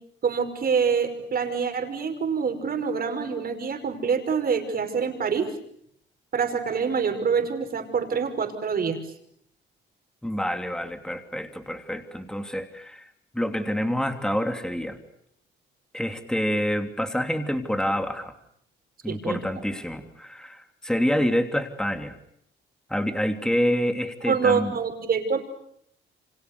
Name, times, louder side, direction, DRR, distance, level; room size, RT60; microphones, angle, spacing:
voice 1, 0.2-5.5 6.3-9.0 19.1-19.4 24.3-25.4, right 6 dB, 50° right, 7 dB, 5.6 m, -26 dB
voice 2, 10.2-15.0 15.9-18.3 19.0-22.1 22.9-24.8, equal, 5° left, 7 dB, 3.0 m, -27 dB
30.0 x 26.0 x 6.8 m, 0.69 s
cardioid pair, 90°, 20 cm